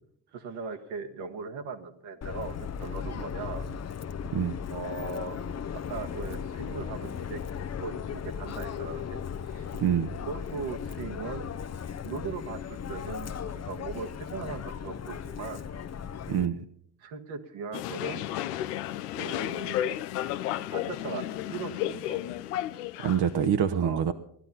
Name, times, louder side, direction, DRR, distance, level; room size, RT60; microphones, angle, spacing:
voice 1, 0.3-3.7 4.7-5.4 5.7-7.4 7.8-9.7 10.3-11.5 12.0-15.6 17.0-18.2 19.1-19.9 20.7-22.2 23.8-24.1, right 4 dB, 75° right, 5 dB, 1.7 m, -39 dB
Subway metro underground, 2.2-16.5, left 7 dB, 35° left, 0.8 m, -37 dB
voice 2, 9.8-10.2 16.3-16.6 23.0-24.1, right 8 dB, 55° right, 7 dB, 1.0 m, -26 dB
sound 1, 17.7-23.5, left 13 dB, 90° left, 0.6 m, -33 dB
17.0 x 12.0 x 5.7 m, 0.70 s
hypercardioid pair, 55°, 46 cm